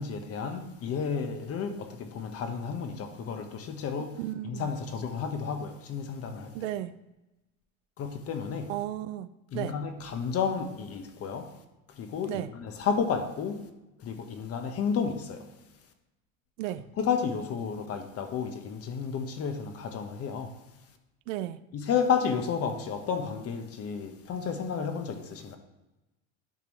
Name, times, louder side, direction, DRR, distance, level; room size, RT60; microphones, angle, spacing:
voice 1, 0.0-4.2 4.4-6.5 8.0-8.7 9.5-11.5 11.9-13.6 14.0-15.4 17.0-20.5 21.7-25.6, left 6 dB, 40° left, 1.1 m, -32 dB
voice 2, 4.2-4.7 6.5-6.9 8.7-9.3 9.5-9.8 12.3-12.5 16.6-16.8 21.3-21.6, right 13 dB, 80° right, 0.5 m, -34 dB
10.5 x 6.0 x 3.1 m
supercardioid pair, 115°, 37 cm